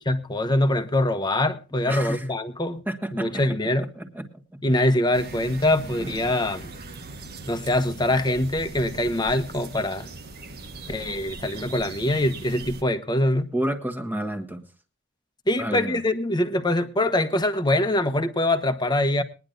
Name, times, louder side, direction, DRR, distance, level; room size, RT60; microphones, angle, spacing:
voice 1, 0.1-2.8 3.1-3.9 4.6-6.7 7.5-10.1 10.9-13.5 15.5-19.2, left 1 dB, 20° left, 1.0 m, -23 dB
voice 2, 1.9-2.2 2.9-3.4 3.8-4.3 6.0-6.1 13.5-14.7 15.6-16.0, right 1 dB, 10° right, 1.4 m, -30 dB
sound 1, 5.1-12.8, right 3 dB, 50° right, 1.4 m, -40 dB
22.0 x 10.5 x 2.6 m
head